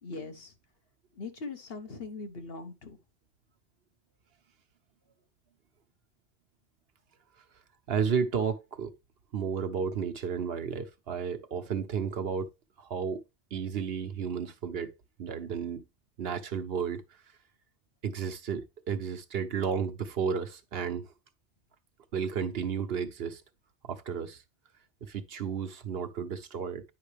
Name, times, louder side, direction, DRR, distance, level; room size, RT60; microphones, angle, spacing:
voice 1, 0.0-0.5 1.1-3.0, left 3 dB, 65° left, 1.5 m, -41 dB
voice 2, 7.9-8.9 9.3-12.5 12.8-13.2 13.5-14.9 15.2-15.8 16.2-17.2 18.0-21.1 22.1-23.4 23.8-24.4 25.0-26.8, right 6 dB, 70° right, 1.0 m, -32 dB
9.6 x 5.3 x 3.3 m
omnidirectional pair, 1.1 m